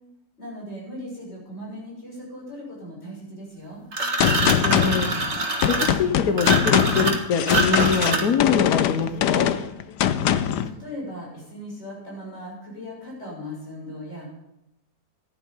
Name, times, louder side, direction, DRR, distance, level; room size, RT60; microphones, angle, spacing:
voice 1, 0.4-3.8 10.2-14.3, left 1 dB, 40° left, -4 dB, 7.2 m, -38 dB
sound 1, 3.9-8.5, right 3 dB, 45° right, 2.0 m, -25 dB
Gunshot gunfire, 4.2-10.7, left 10 dB, 90° left, 1.3 m, -22 dB
voice 2, 4.2-5.1 5.7-9.5, left 6 dB, 65° left, 6 dB, 1.4 m, -24 dB
14.5 x 11.0 x 5.5 m, 0.87 s
omnidirectional pair, 1.8 m